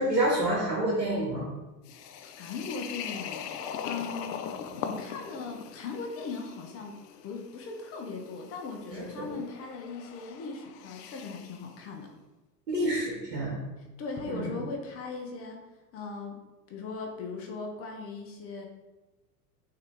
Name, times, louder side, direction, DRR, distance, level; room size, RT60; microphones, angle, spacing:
voice 1, 0.0-1.5 8.9-9.2 12.7-13.6 14.3-14.5, right 1 dB, 85° right, -5 dB, 1.2 m, -28 dB
sound 1, 1.9-11.7, left 7 dB, 75° left, 0.5 m, -41 dB
voice 2, 1.9-4.6 4.8-7.0 7.2-12.1 14.0-15.6 15.9-16.4 16.7-18.7, left 4 dB, 30° left, 2 dB, 0.6 m, -39 dB
3.7 x 2.8 x 3.5 m, 1.1 s
hypercardioid pair, 95°, 49 cm